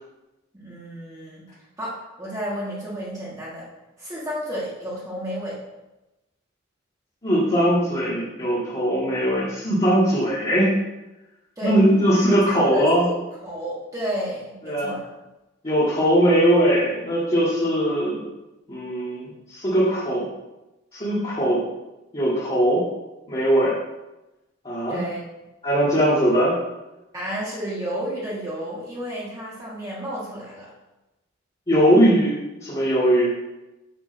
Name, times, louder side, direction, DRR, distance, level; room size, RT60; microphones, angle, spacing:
voice 1, 0.5-1.5 1.8-3.6 4.0-5.6 11.6-11.7 12.2-13.1 13.4-15.1 24.9-25.2 27.1-30.7, equal, 20° right, -7 dB, 1.5 m, -32 dB
voice 2, 7.2-10.7 11.6-13.1 14.6-14.9 15.6-18.3 18.7-20.2 20.9-21.6 22.1-22.8 23.3-23.7 24.6-25.0 25.6-26.5 31.7-32.3 32.6-33.3, equal, 30° left, -10 dB, 1.9 m, -20 dB
8.2 x 3.0 x 5.9 m, 1.0 s
head